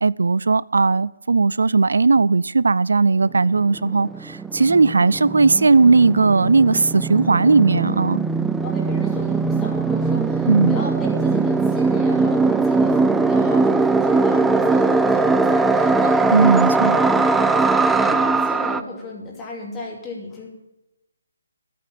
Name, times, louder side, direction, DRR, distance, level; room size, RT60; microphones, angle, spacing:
voice 1, 0.0-8.2 10.5-10.7 16.3-17.0, right 4 dB, 85° right, 0.3 m, -17 dB
sound 1, 3.3-3.4 3.6-18.8, right 3 dB, 5° right, 0.3 m, -20 dB
voice 2, 7.9-8.2 8.6-20.5, left 2 dB, 15° left, 2.7 m, -35 dB
11.0 x 8.6 x 7.6 m
hypercardioid pair, 160°, 0 cm